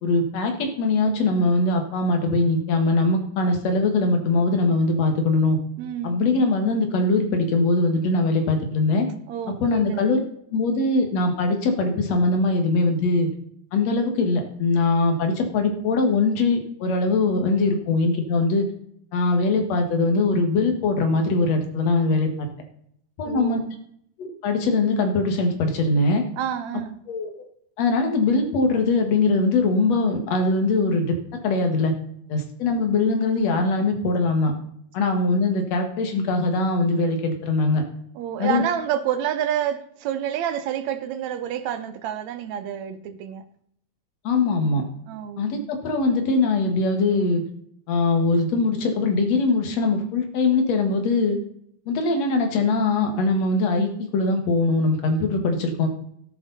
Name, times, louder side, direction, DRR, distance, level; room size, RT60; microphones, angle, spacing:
voice 1, 0.0-5.6 6.0-9.1 9.5-10.2 10.5-13.3 13.7-18.7 19.1-22.5 23.2-23.6 24.2-26.2 27.1-27.3 27.8-31.2 31.4-31.9 32.3-34.5 34.9-37.8 38.4-38.6 44.2-44.8 45.4-47.4 47.9-51.4 51.9-55.9, left 3 dB, 65° left, 2.9 m, -21 dB
voice 2, 5.8-6.2 9.3-10.0 23.2-23.7 26.4-26.9 38.2-43.4 45.1-45.4, right 9 dB, 75° right, 2.1 m, -28 dB
13.5 x 10.5 x 4.1 m
omnidirectional pair, 3.4 m